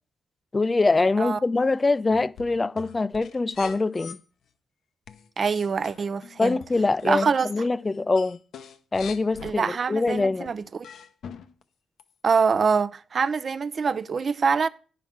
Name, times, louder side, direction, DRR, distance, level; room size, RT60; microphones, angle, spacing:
voice 1, 0.5-4.2 6.4-8.4 8.9-10.5, left 3 dB, 25° left, 0.4 m, -24 dB
sound 1, 2.1-4.2 5.1-7.6 7.9-9.6 10.1-11.6 12.0-12.1, left 7 dB, 80° left, 0.7 m, -43 dB
voice 2, 5.4-6.6 7.0-7.5 9.4-10.8 12.2-14.7, right 5 dB, 50° right, 0.5 m, -24 dB
9.8 x 5.7 x 5.9 m
cardioid pair, 85°, 0 cm